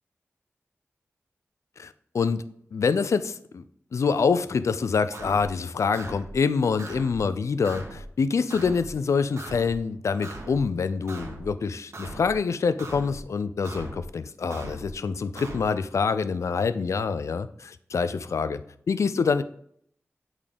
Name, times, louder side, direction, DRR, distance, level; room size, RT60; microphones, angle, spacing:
voice 1, 1.8-2.4 2.7-3.6 3.9-18.6 18.9-19.4, left 5 dB, 85° left, 13 dB, 0.4 m, -26 dB
sound 1, 5.1-5.5 5.9-6.3 6.8-7.2 7.6-8.1 8.5-8.9 9.4-9.8 10.2-10.6 11.1-11.5 11.9-12.3 12.8-13.2 13.6-14.1 14.5-14.9 15.4-15.6, right 2 dB, 70° right, 1.4 m, -39 dB
8.5 x 3.7 x 5.1 m, 0.65 s
wide cardioid pair, 70°, 5 cm